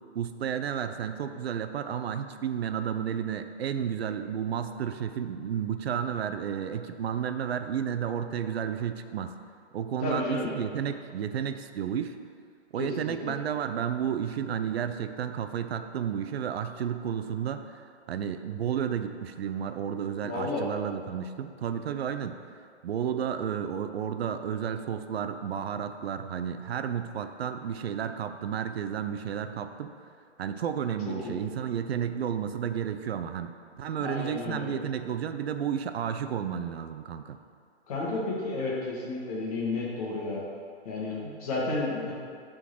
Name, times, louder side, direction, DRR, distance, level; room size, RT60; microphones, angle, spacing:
voice 1, 0.1-9.4 9.7-12.1 12.7-22.4 22.8-29.9 30.4-37.4, right 8 dB, 65° right, 9 dB, 0.5 m, -32 dB
voice 2, 10.0-10.5 12.8-13.3 20.2-20.6 31.0-31.4 34.0-34.7 37.9-40.4 40.8-42.1, left 2 dB, 35° left, -5 dB, 1.5 m, -32 dB
6.0 x 3.9 x 5.9 m, 2.3 s
hypercardioid pair, 170°, 34 cm